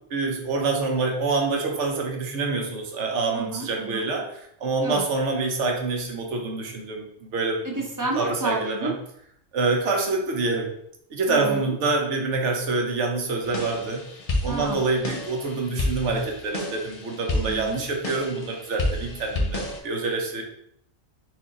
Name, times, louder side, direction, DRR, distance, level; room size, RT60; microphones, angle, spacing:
voice 1, 0.1-7.8 8.1-8.9 9.5-10.7 11.1-14.1 14.4-20.4, right 3 dB, 70° right, 2 dB, 1.1 m, -26 dB
voice 2, 3.3-4.1 4.8-5.1 7.6-8.9 11.3-11.7 14.4-14.8 17.3-17.8, right 3 dB, 25° right, -1 dB, 0.4 m, -30 dB
sound 1, 13.4-19.8, left 1 dB, 40° left, 0.6 m, -30 dB
4.2 x 2.6 x 3.7 m, 0.70 s
omnidirectional pair, 1.3 m